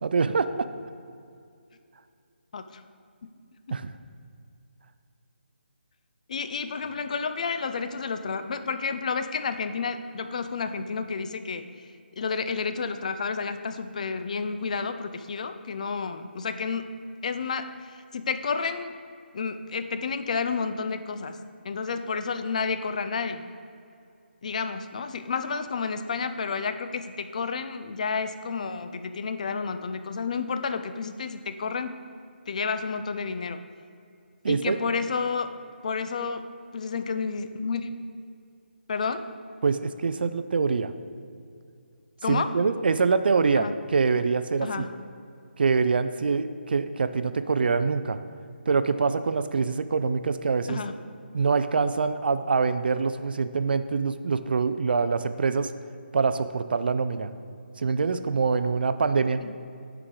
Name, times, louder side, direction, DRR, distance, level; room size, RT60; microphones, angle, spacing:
voice 1, 0.0-0.7 3.7-3.9 34.4-34.8 39.6-40.9 42.3-44.8 45.6-48.2 48.7-50.8 51.3-55.7 56.1-57.3 57.8-59.4, right 4 dB, 55° right, 11 dB, 0.4 m, -25 dB
voice 2, 6.3-11.9 12.2-16.9 17.2-19.0 19.3-21.4 21.6-23.5 24.4-32.0 32.5-33.6 34.5-35.5 35.8-36.5 36.7-38.0 38.9-39.3 42.2-42.5 43.6-43.7 44.6-44.9 50.7-50.9 59.4-59.5, left 5 dB, 40° left, 10 dB, 0.4 m, -30 dB
10.0 x 4.6 x 3.8 m, 2.4 s
hypercardioid pair, 165°, 6 cm